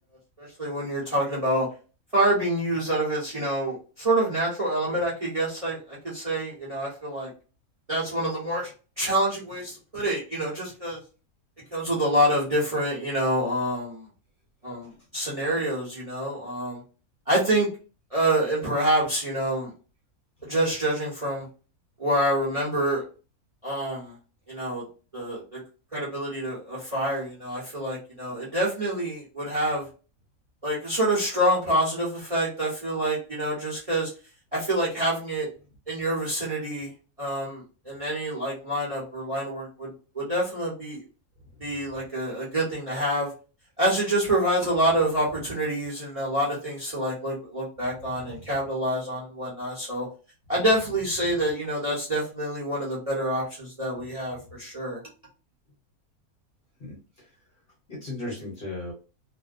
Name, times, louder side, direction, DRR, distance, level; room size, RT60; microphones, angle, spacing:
voice 1, 0.4-1.7 2.1-7.3 7.9-8.7 9.0-11.0 11.7-14.0 14.6-16.8 17.3-17.7 18.1-19.7 20.5-21.4 22.0-23.0 23.6-24.1 24.5-24.8 25.1-25.6 25.9-29.8 30.6-34.1 34.5-35.5 35.9-36.9 37.2-39.9 40.1-41.0 41.6-43.3 43.8-50.1 50.5-55.0, right 1 dB, 30° right, -4 dB, 0.9 m, -27 dB
voice 2, 48.0-48.4 50.5-51.4 56.8-57.0 57.9-58.9, left 2 dB, 45° left, -2 dB, 1.0 m, -38 dB
2.6 x 2.0 x 2.4 m, 0.34 s
omnidirectional pair, 1.6 m